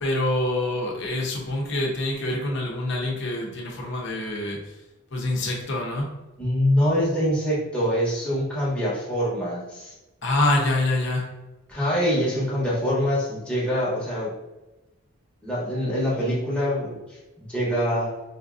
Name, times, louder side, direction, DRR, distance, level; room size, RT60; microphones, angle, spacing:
voice 1, 0.0-4.6 5.1-6.1 10.2-11.3, left 2 dB, 55° left, -1 dB, 0.8 m, -25 dB
voice 2, 6.4-9.9 11.7-14.3 15.4-18.1, equal, 5° left, -8 dB, 0.9 m, -24 dB
4.3 x 2.6 x 2.4 m, 1.1 s
head